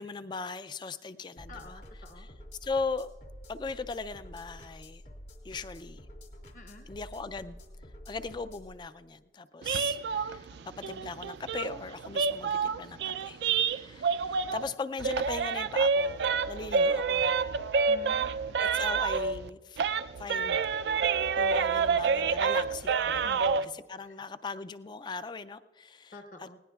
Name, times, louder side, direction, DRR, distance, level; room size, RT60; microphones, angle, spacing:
voice 1, 0.0-1.6 2.2-2.3 2.6-3.1 3.5-5.0 5.4-6.1 6.9-7.6 8.1-10.5 10.8-13.4 13.7-17.2 18.6-19.8 20.2-20.9 21.4-26.5, left 4 dB, 25° left, 13 dB, 0.3 m, -39 dB
sound 1, 1.4-8.7, equal, 60° left, 2.2 m, -49 dB
voice 2, 1.5-2.3 6.5-6.9 10.5-10.7 14.3-14.5 17.9-18.6 23.2-24.2 26.1-26.6, left 1 dB, 45° left, 5 dB, 0.9 m, -50 dB
sound 2, 9.6-14.7 15.0-19.5 19.8-23.7, right 5 dB, 70° right, 0.3 m, -28 dB
19.5 x 18.0 x 2.3 m, 1.3 s
head